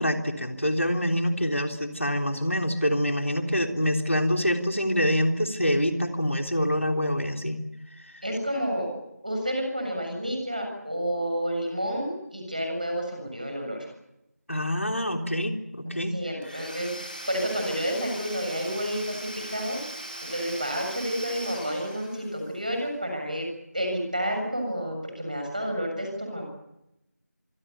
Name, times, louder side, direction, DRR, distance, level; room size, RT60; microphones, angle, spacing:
voice 1, 0.0-7.6 14.5-16.2, equal, 50° left, 5 dB, 3.6 m, -26 dB
voice 2, 8.2-9.0 9.2-13.9 16.1-19.8 20.3-23.5 23.7-26.5, equal, 30° right, 3 dB, 7.1 m, -30 dB
Domestic sounds home sounds / Tools, 16.4-22.5, right 1 dB, 30° left, 4.1 m, -40 dB
25.5 x 25.0 x 6.9 m, 0.87 s
figure-of-eight pair, 180°, 9 cm